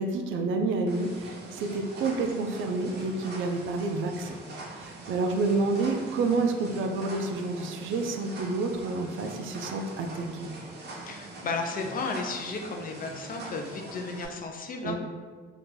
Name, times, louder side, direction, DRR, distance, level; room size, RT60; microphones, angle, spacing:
voice 1, 0.0-4.4 4.8-10.5 14.8-15.0, right 3 dB, 80° right, 5 dB, 0.4 m, -29 dB
sound 1, 0.9-14.3, right 2 dB, 55° right, 0.8 m, -43 dB
voice 2, 11.0-15.0, left 4 dB, 45° left, 3 dB, 0.5 m, -34 dB
2.8 x 2.4 x 3.7 m, 1.5 s
cardioid pair, 90°, 20 cm